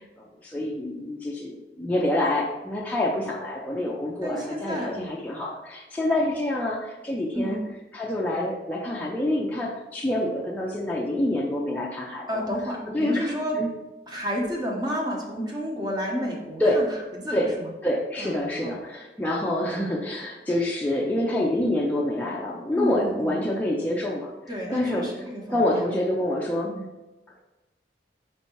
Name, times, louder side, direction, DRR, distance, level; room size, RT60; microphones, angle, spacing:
voice 1, 0.4-7.6 7.9-12.5 12.9-13.7 16.6-16.8 17.3-17.5 17.8-24.3 24.7-25.1 25.5-26.7, left 1 dB, 10° left, -3 dB, 0.4 m, -27 dB
voice 2, 4.2-5.0 7.3-7.6 12.3-13.6 14.1-17.7 18.2-18.7 22.7-23.4 24.5-26.0 26.6-26.9, equal, 25° right, -2 dB, 0.8 m, -31 dB
4.4 x 2.7 x 4.4 m, 1.1 s
head